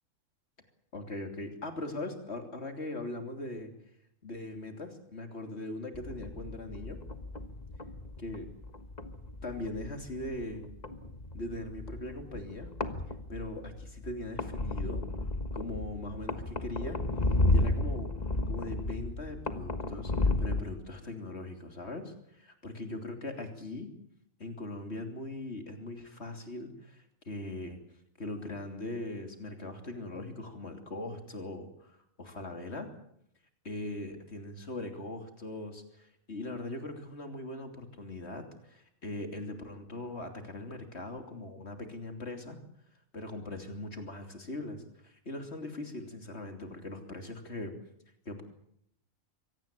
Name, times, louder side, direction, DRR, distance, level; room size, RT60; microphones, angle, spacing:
voice 1, 0.9-3.7 4.2-7.0 8.2-8.5 9.4-10.7 11.3-12.7 13.3-15.1 15.5-17.0 17.5-18.1 18.5-23.9 24.4-27.8 28.2-32.9 33.6-42.6 43.1-47.7 48.2-48.4, left 2 dB, 50° left, 5 dB, 3.3 m, -40 dB
sound 1, 5.9-20.6, left 2 dB, 30° left, 1.4 m, -33 dB
24.0 x 17.5 x 8.9 m, 0.73 s
omnidirectional pair, 1.4 m